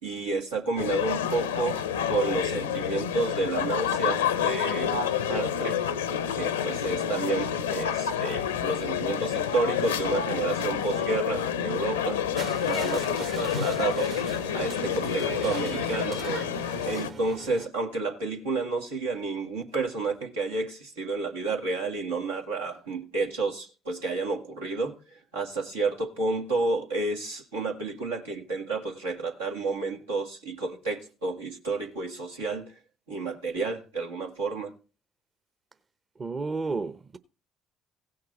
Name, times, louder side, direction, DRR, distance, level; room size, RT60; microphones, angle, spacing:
voice 1, 0.0-1.8 2.1-5.8 6.4-12.2 12.7-14.1 14.5-16.3 16.8-25.0 25.3-32.7 33.1-34.7, right 3 dB, 85° right, 2.0 m, -30 dB
sound 1, 0.8-17.1, left 8 dB, 85° left, 0.7 m, -28 dB
sound 2, 12.4-17.7, right 5 dB, 60° right, 2.0 m, -40 dB
voice 2, 36.2-37.2, right 3 dB, 35° right, 0.9 m, -31 dB
16.5 x 6.5 x 4.3 m
hypercardioid pair, 50°, 0 cm